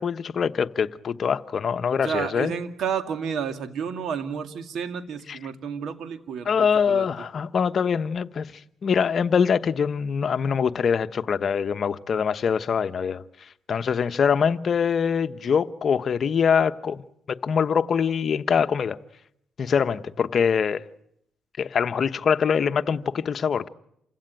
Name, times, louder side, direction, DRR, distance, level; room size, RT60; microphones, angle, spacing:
voice 1, 0.0-2.5 5.3-5.4 6.5-8.5 8.8-13.2 13.7-17.0 17.4-19.0 19.6-20.8 21.6-23.7, left 6 dB, 50° left, 1.0 m, -23 dB
voice 2, 2.0-7.3, right 7 dB, 70° right, 2.1 m, -31 dB
28.0 x 16.5 x 9.2 m
cardioid pair, 90°, 0 cm